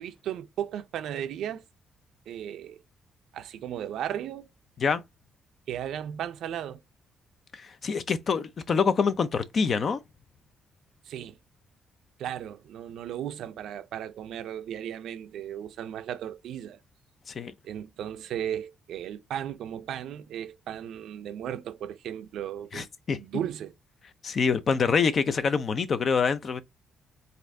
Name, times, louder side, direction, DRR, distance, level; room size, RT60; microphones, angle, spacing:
voice 1, 0.0-1.6 2.3-2.8 3.3-4.5 5.7-6.8 11.1-11.4 12.2-16.8 17.6-22.9 23.1-23.7, right 10 dB, 80° right, 0.4 m, -35 dB
voice 2, 7.5-10.0 17.3-17.5 22.7-23.2 24.2-26.6, left 5 dB, 50° left, 0.5 m, -26 dB
4.2 x 2.5 x 2.7 m
cardioid pair, 90°, 0 cm